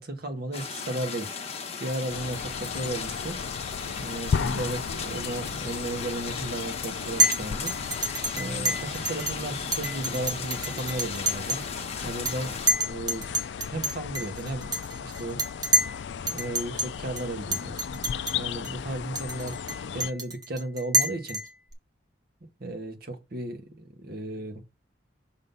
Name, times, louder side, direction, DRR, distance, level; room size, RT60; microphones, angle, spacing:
voice 1, 0.0-1.5 1.8-3.4 4.0-7.7 8.3-12.5 12.8-13.4 13.7-15.7 16.2-17.9 18.3-19.6 19.9-21.4 22.6-24.6, right 1 dB, 50° right, 1.5 m, -35 dB
sound 1, 0.5-12.7, left 5 dB, 30° left, 1.1 m, -37 dB
sound 2, 2.1-20.1, left 7 dB, 60° left, 0.3 m, -36 dB
Chink clink, 7.2-7.4 7.7-9.3 9.7-11.7 12.0-12.3 12.7-16.0 16.3-16.9 17.2-17.3 17.5-18.3 18.6-18.7 19.2-21.7, right 1 dB, 20° right, 1.3 m, -27 dB
6.3 x 3.9 x 5.5 m
head